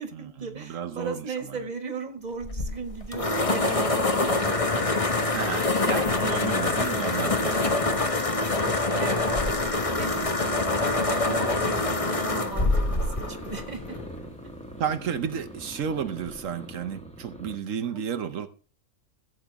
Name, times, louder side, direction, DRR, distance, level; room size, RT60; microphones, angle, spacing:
voice 1, 0.0-5.1 6.2-6.7 9.0-14.0 17.9-18.2, right 4 dB, 35° right, 1.7 m, -37 dB
voice 2, 0.7-1.2 5.3-9.0 14.8-18.5, right 8 dB, 85° right, 1.3 m, -32 dB
sound 1, 2.4-14.2, left 2 dB, 30° left, 1.2 m, -25 dB
sound 2, 9.8-17.6, right 1 dB, 5° left, 1.6 m, -43 dB
15.5 x 8.0 x 3.4 m
omnidirectional pair, 1.3 m